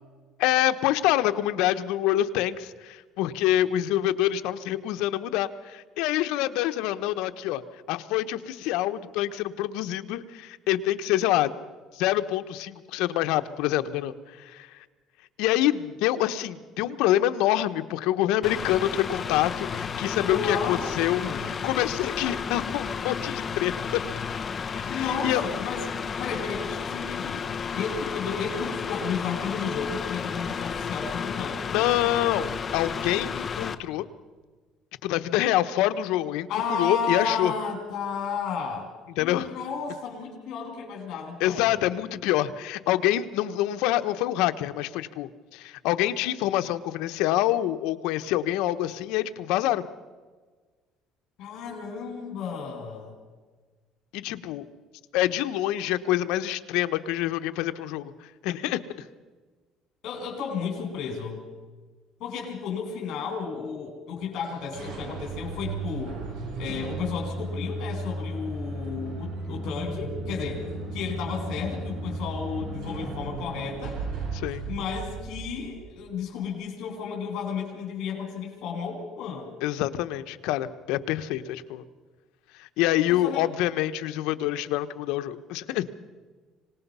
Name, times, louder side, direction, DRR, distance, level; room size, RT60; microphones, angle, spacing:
voice 1, 0.4-11.5 11.9-14.8 15.4-24.0 24.8-25.4 31.7-34.1 35.0-37.5 39.2-39.5 41.4-49.8 54.1-54.6 55.1-58.8 74.3-74.6 79.6-81.8 82.5-85.9, left 13 dB, 85° left, 10 dB, 1.0 m, -26 dB
Mechanical fan, 18.4-33.7, left 6 dB, 25° left, 1.0 m, -32 dB
voice 2, 20.2-21.6 24.9-25.8 26.2-31.8 36.5-41.8 51.4-53.2 60.0-61.4 62.2-66.2 66.6-74.0 74.7-79.5 83.1-83.5, left 6 dB, 60° left, 1 dB, 4.5 m, -33 dB
sound 1, 64.4-76.1, right 2 dB, 75° right, 7.8 m, -35 dB
25.5 x 19.0 x 5.6 m, 1.4 s
cardioid pair, 145°, 0 cm